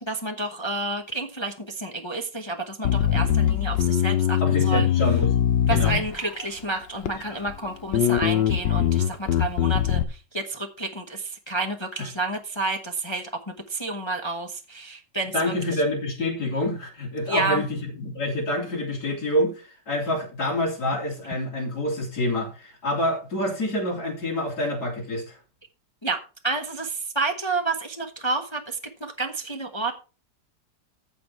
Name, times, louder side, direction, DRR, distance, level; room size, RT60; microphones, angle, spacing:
voice 1, 0.0-4.9 5.7-15.5 17.3-17.6 20.9-21.0 26.0-29.9, right 3 dB, 20° left, 0.9 m, -30 dB
Bass guitar, 2.8-6.4 7.0-7.6 7.9-10.0, left 10 dB, 80° left, 1.5 m, -22 dB
voice 2, 4.4-5.3 5.7-6.0 12.0-12.1 15.3-25.4, left 1 dB, 60° left, 3.9 m, -27 dB
14.5 x 5.2 x 4.5 m
omnidirectional pair, 1.9 m